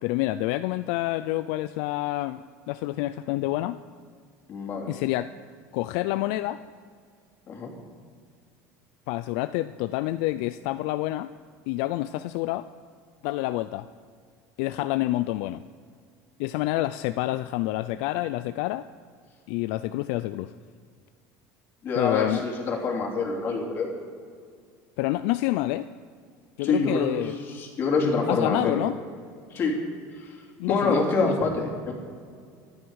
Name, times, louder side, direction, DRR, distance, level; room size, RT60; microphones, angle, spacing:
voice 1, 0.0-2.4 2.7-3.8 4.9-5.3 5.7-6.6 9.1-11.3 11.7-12.7 13.2-13.9 14.6-15.6 16.4-18.9 19.5-20.5 22.0-22.5 25.0-25.9 26.6-27.3 28.3-29.0 30.6-31.3, left 16 dB, 70° left, 12 dB, 0.4 m, -28 dB
voice 2, 4.5-4.9 7.5-7.7 21.8-23.9 26.6-28.8 29.5-31.9, left 3 dB, 30° left, 0 dB, 2.9 m, -26 dB
25.0 x 9.6 x 4.8 m, 2.1 s
cardioid pair, 165°, 7 cm